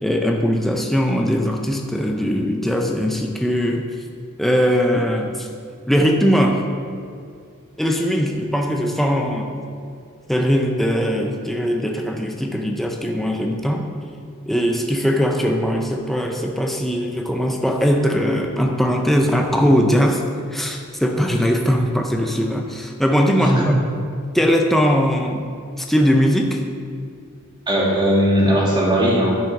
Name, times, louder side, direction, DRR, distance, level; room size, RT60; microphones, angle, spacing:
voice 1, 0.0-3.9 4.4-5.5 5.9-6.6 7.8-9.6 10.3-13.9 14.5-20.2 20.5-23.6 24.3-25.4 25.8-26.6, equal, ahead, 2 dB, 0.5 m, -20 dB
voice 2, 23.4-23.7 27.7-29.3, equal, 20° right, -4 dB, 2.1 m, -18 dB
10.5 x 5.7 x 5.3 m, 2.2 s
head